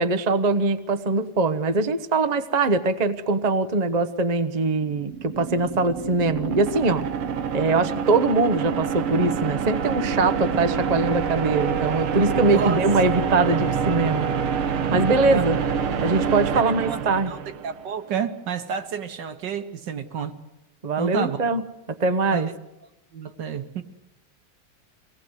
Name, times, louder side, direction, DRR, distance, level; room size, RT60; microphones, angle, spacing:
voice 1, 0.0-7.1 7.5-14.3 14.9-15.6 16.0-17.3 20.8-21.6 22.0-22.5, right 3 dB, 35° right, 0.6 m, -22 dB
sound 1, 4.8-17.9, right 6 dB, 80° right, 2.0 m, -27 dB
voice 2, 14.9-15.4 16.5-17.0 17.3-17.4 17.6-20.3 21.0-21.4 22.3-22.5 23.1-23.8, right 7 dB, 60° right, 1.7 m, -30 dB
24.0 x 18.0 x 8.1 m
omnidirectional pair, 2.3 m